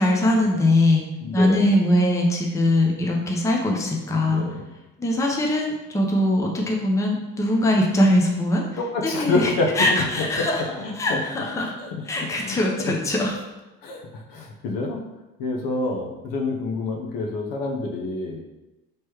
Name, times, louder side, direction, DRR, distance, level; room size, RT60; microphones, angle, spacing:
voice 1, 0.0-1.0 1.3-4.4 5.0-8.6 9.2-10.6 11.0-11.7 12.1-13.3, left 1 dB, 10° left, -1 dB, 0.7 m, -21 dB
voice 2, 1.2-1.7 4.2-4.7 8.8-10.5 10.8-11.2 11.6-12.0 12.4-12.9 13.3-13.4 13.8-15.0 15.4-18.4, left 3 dB, 55° left, 1 dB, 0.9 m, -28 dB
4.4 x 3.2 x 3.0 m, 1.0 s
hypercardioid pair, 75°, 40 cm